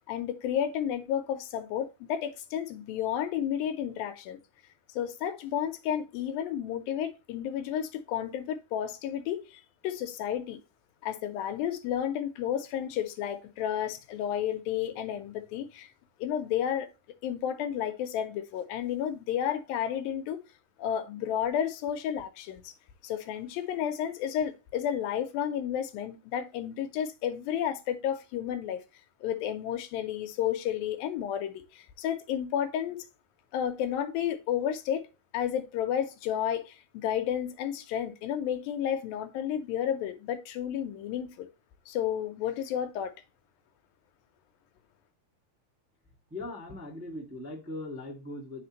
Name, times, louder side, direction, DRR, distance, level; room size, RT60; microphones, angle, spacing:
voice 1, 0.1-4.4 5.0-10.6 11.0-15.9 16.2-16.9 17.2-20.4 20.8-22.7 23.0-28.8 29.2-33.0 33.5-35.1 35.3-41.5 41.9-43.1, left 9 dB, 85° left, 2.6 m, -32 dB
voice 2, 46.3-48.7, left 2 dB, 10° right, 0.9 m, -39 dB
10.0 x 4.3 x 2.9 m
omnidirectional pair, 4.0 m